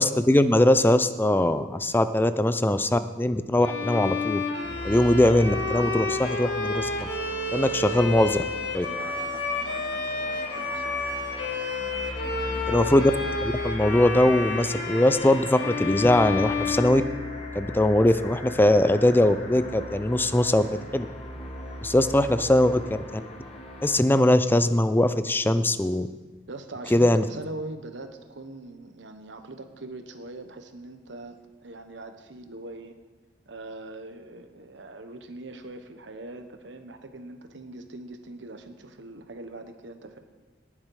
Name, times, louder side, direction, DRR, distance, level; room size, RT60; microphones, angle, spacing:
voice 1, 0.0-4.4 4.8-7.1 7.5-8.4 8.7-8.9 12.7-13.1 13.4-17.0 17.5-20.7 20.9-21.1 21.8-22.7 23.1-23.2 23.8-26.1 26.9-27.2, left 1 dB, 10° left, 12 dB, 0.4 m, -21 dB
Bowed string instrument, 3.6-17.7, left 3 dB, 70° left, 1.7 m, -30 dB
sound 1, 4.6-24.0, left 1 dB, 35° left, 1.4 m, -38 dB
voice 2, 8.8-11.0 12.2-12.9 22.3-22.4 26.5-33.0 33.5-40.2, right 2 dB, 80° right, 7 dB, 1.2 m, -42 dB
18.0 x 7.4 x 4.8 m, 1.3 s
head